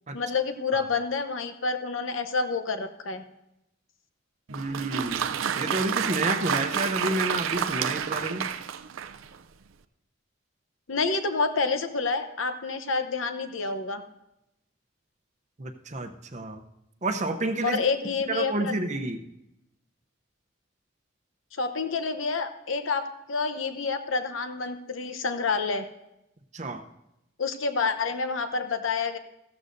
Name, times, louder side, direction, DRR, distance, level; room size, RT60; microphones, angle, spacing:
voice 1, 0.1-3.2 10.9-14.0 17.6-18.7 21.6-23.0 23.3-25.9 27.4-29.2, left 4 dB, 80° left, 9 dB, 0.9 m, -28 dB
voice 2, 4.5-5.2 5.6-8.4 15.6-16.6 17.0-17.8 18.3-19.2 26.5-26.8, right 2 dB, 35° right, 6 dB, 0.7 m, -29 dB
Applause, 4.5-9.4, right 8 dB, 90° right, 0.5 m, -29 dB
15.0 x 13.0 x 2.6 m, 0.86 s
head